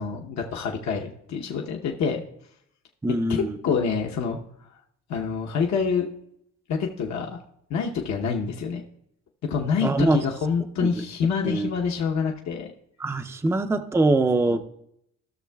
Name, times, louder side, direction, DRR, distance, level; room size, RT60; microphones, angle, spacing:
voice 1, 0.0-2.2 3.3-4.4 5.1-6.1 6.7-7.4 7.7-8.8 9.5-12.7 14.5-14.6, left 6 dB, 65° left, 1 dB, 0.9 m, -27 dB
voice 2, 3.0-3.6 9.8-10.2 10.8-10.9 11.4-11.7 13.0-14.6, right 2 dB, 10° right, 7 dB, 0.5 m, -23 dB
15.0 x 6.5 x 2.3 m, 0.73 s
cardioid pair, 90°, 30 cm